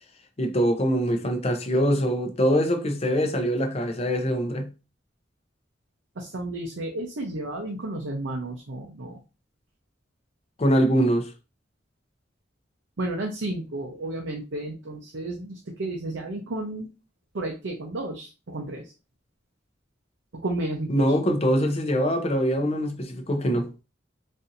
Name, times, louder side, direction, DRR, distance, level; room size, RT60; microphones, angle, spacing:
voice 1, 0.4-4.7 10.6-11.3 20.9-23.7, equal, 35° left, 0.6 m, -23 dB
voice 2, 6.2-9.2 13.0-16.9 17.3-18.9 20.3-21.1, right 2 dB, 85° right, 0.7 m, -32 dB
4.2 x 2.7 x 2.5 m
head